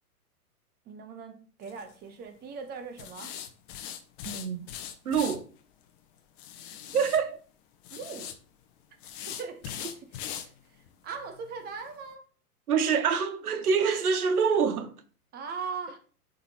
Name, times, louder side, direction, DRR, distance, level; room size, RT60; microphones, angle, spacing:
voice 1, 0.8-3.4 7.9-8.3 9.3-12.2 15.3-16.0, right 5 dB, 20° right, 1.0 m, -40 dB
sound 1, 1.6-1.9 3.0-5.4 6.4-7.2 7.8-8.3 9.0-10.5 10.9-11.0 11.4-11.5 11.9-12.0, left 9 dB, 35° left, 1.0 m, -40 dB
voice 2, 4.2-4.6 5.0-5.5 6.9-7.4 12.7-14.9, right 6 dB, 70° right, 1.1 m, -25 dB
11.0 x 4.0 x 2.9 m
figure-of-eight pair, 110°, 46 cm